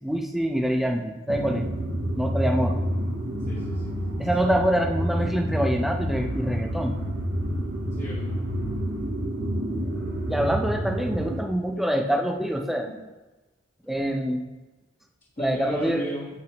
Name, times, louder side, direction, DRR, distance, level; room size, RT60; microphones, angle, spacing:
voice 1, 0.0-1.7 2.2-2.8 4.2-7.0 10.3-12.9 13.9-14.5 15.4-16.0, equal, ahead, 2 dB, 0.7 m, -25 dB
sound 1, 1.3-11.4, equal, 65° right, 1.1 m, -28 dB
voice 2, 3.4-4.0 4.4-4.6 7.9-8.4 10.1-10.2 12.9-13.0 15.4-16.3, equal, 40° left, -7 dB, 1.5 m, -35 dB
8.7 x 8.1 x 3.0 m, 1.1 s
head